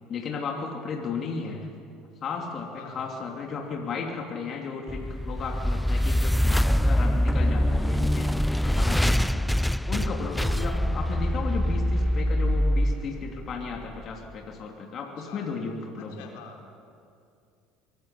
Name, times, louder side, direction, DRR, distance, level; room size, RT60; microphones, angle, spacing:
voice 1, 0.1-1.7 2.2-9.4 9.9-16.3, left 5 dB, 45° left, 1 dB, 3.1 m, -34 dB
voice 2, 2.7-3.1 15.2-15.5 16.0-16.8, left 6 dB, 75° left, 1 dB, 4.0 m, -46 dB
sound 1, 4.9-14.0, equal, 5° left, 0.5 m, -24 dB
24.5 x 19.0 x 8.4 m, 2.5 s
hypercardioid pair, 75°, 0 cm